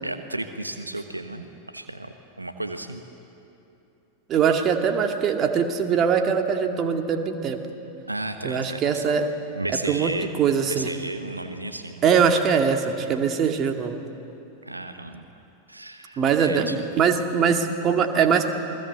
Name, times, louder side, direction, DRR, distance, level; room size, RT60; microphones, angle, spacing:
voice 1, 0.0-3.0 8.1-9.2 9.5-10.3 10.6-12.0 14.6-15.2 15.7-16.8, right 2 dB, 85° right, 8 dB, 1.1 m, -33 dB
voice 2, 4.3-7.6 8.4-9.2 9.9-10.1 10.4-10.9 12.0-14.0 16.2-18.5, right 6 dB, 30° right, 4 dB, 2.1 m, -22 dB
28.0 x 20.5 x 8.1 m, 2.9 s
figure-of-eight pair, 90°, 0 cm